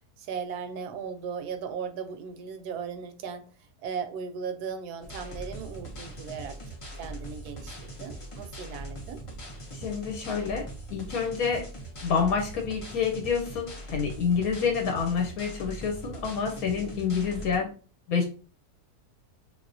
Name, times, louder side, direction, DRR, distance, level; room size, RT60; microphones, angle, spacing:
voice 1, 0.2-3.4 3.8-9.2 17.4-17.7, right 6 dB, 85° right, 1.1 m, -37 dB
sound 1, 5.0-17.6, right 1 dB, 50° left, 0.4 m, -41 dB
voice 2, 9.7-10.6 10.9-11.6 12.0-17.7 18.1-18.2, left 6 dB, 75° left, 1.1 m, -28 dB
3.4 x 2.7 x 2.6 m
omnidirectional pair, 1.6 m